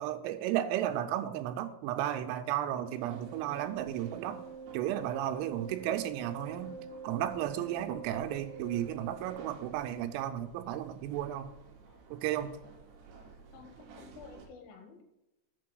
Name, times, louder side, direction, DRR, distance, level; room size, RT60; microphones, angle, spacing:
voice 1, 0.0-4.4 4.7-6.8 7.0-11.5 12.1-12.5, right 12 dB, 90° right, 8 dB, 3.4 m, -34 dB
Wind instrument woodwind instrument, 2.6-9.7, right 4 dB, 35° right, 1.5 m, -47 dB
sound 1, 2.9-14.5, right 4 dB, 65° right, 3.0 m, -55 dB
voice 2, 13.5-15.0, left 5 dB, 75° left, 4 dB, 3.8 m, -52 dB
7.4 x 6.0 x 6.3 m, 0.91 s
omnidirectional pair, 5.9 m